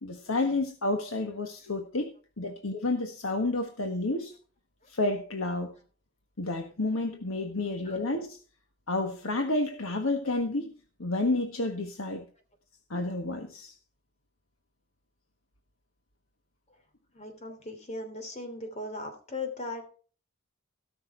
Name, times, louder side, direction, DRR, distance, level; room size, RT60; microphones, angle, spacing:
voice 1, 0.0-4.3 4.9-5.7 6.4-8.4 8.9-10.7 11.0-12.2 12.9-13.7, left 2 dB, 80° left, 4 dB, 1.5 m, -30 dB
voice 2, 17.1-19.9, left 2 dB, 30° left, 5 dB, 2.9 m, -38 dB
17.5 x 6.1 x 4.6 m, 0.40 s
head